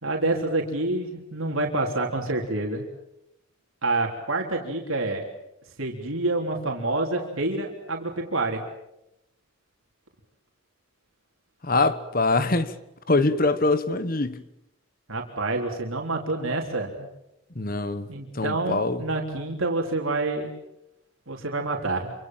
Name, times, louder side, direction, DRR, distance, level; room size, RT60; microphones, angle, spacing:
voice 1, 0.0-2.9 3.8-5.2 5.8-8.6 15.1-17.1 18.1-20.5 21.3-22.1, right 2 dB, 75° right, 3.7 m, -27 dB
voice 2, 11.6-12.7 13.1-14.4 17.5-18.1 18.3-19.0, left 3 dB, 45° left, 1.4 m, -23 dB
28.0 x 25.5 x 7.5 m
head